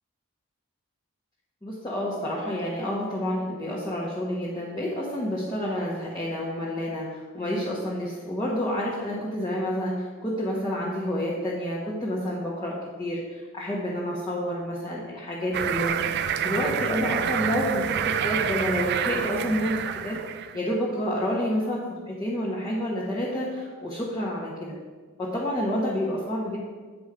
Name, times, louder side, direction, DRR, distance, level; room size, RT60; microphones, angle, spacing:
voice 1, 1.6-20.2 20.5-24.7 25.2-26.7, equal, 15° left, -8 dB, 1.1 m, -29 dB
sound 1, 15.5-20.6, right 8 dB, 50° right, 0.3 m, -28 dB
8.1 x 5.1 x 4.9 m, 1.4 s
head